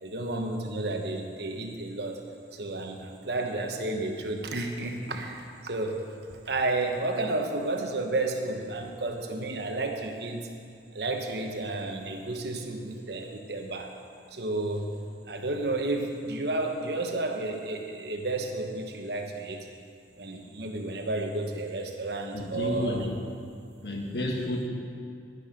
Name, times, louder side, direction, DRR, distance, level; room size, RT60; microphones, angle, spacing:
voice 1, 0.0-2.2 2.5-10.5 10.9-13.9 14.3-15.0 15.3-19.7 20.2-23.1, right 2 dB, 65° right, 4 dB, 1.1 m, -32 dB
voice 2, 22.3-23.1 23.8-24.7, left 1 dB, 65° left, 1 dB, 1.5 m, -31 dB
11.0 x 9.8 x 5.1 m, 2.3 s
head